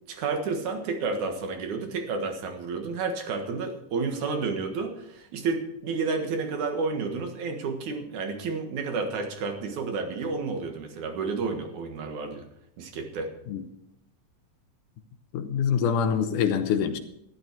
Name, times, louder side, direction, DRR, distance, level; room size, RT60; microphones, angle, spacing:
voice 1, 0.1-12.4 12.8-13.3, right 4 dB, 70° right, 4 dB, 2.9 m, -31 dB
voice 2, 15.3-17.0, left 7 dB, 80° left, 9 dB, 2.5 m, -25 dB
13.0 x 11.5 x 4.6 m, 0.77 s
omnidirectional pair, 3.6 m